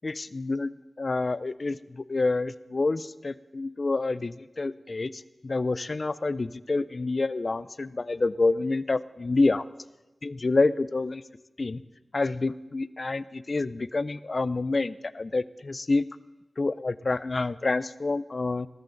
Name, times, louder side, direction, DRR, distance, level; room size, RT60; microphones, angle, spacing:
voice 1, 0.0-9.6 10.2-11.2 11.6-11.8 12.1-16.1 16.6-18.7, left 3 dB, 50° left, 17 dB, 0.4 m, -28 dB
19.0 x 13.5 x 3.9 m, 1.1 s
wide cardioid pair, 75°, 0 cm